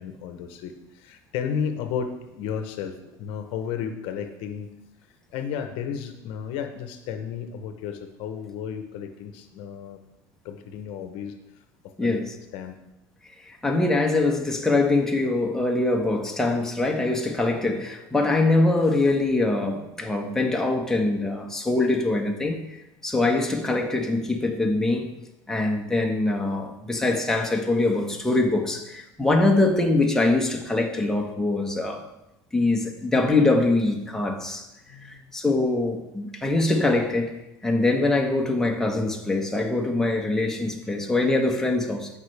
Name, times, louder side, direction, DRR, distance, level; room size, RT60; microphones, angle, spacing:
voice 1, 0.0-4.7 5.3-10.0 10.4-11.3 12.0-12.2 12.5-12.8 34.9-35.3, left 7 dB, 70° left, 0.8 m, -33 dB
voice 2, 13.5-22.8 23.0-25.1 25.5-32.0 32.5-34.7 35.1-37.4 37.6-42.1, left 2 dB, 5° left, 1.2 m, -23 dB
15.0 x 5.4 x 3.3 m
supercardioid pair, 105°, 10 cm